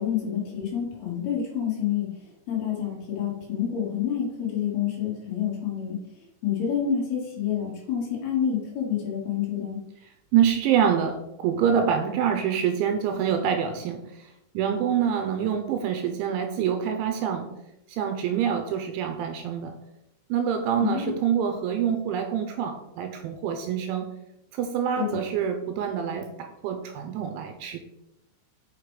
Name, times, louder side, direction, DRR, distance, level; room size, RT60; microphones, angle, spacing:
voice 1, 0.0-2.1 2.5-6.0 6.4-9.8 20.8-21.1 25.0-25.2, left 8 dB, 55° left, -4 dB, 3.9 m, -28 dB
voice 2, 10.3-14.0 14.5-17.5 17.9-19.7 20.3-24.0 24.5-27.8, right 8 dB, 80° right, 6 dB, 2.9 m, -26 dB
7.6 x 6.1 x 4.9 m, 0.87 s
omnidirectional pair, 5.8 m